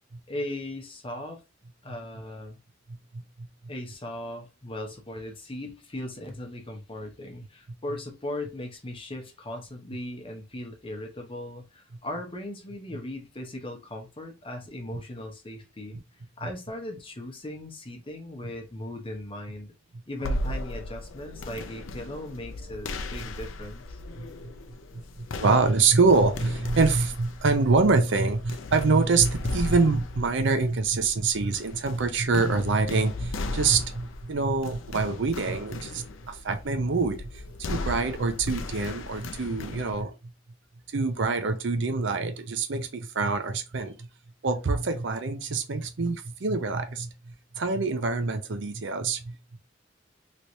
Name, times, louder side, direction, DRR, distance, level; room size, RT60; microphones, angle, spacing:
voice 1, 0.3-1.4 1.8-2.6 3.7-16.0 16.4-19.7 20.1-24.0, left 1 dB, 30° left, 0.9 m, -38 dB
voice 2, 2.9-3.5 24.2-24.5 24.9-37.4 37.7-40.3 40.9-44.1 44.4-49.6, right 4 dB, 65° right, 0.6 m, -25 dB
sound 1, 20.2-40.0, left 2 dB, 80° left, 0.5 m, -37 dB
3.2 x 3.0 x 2.6 m
head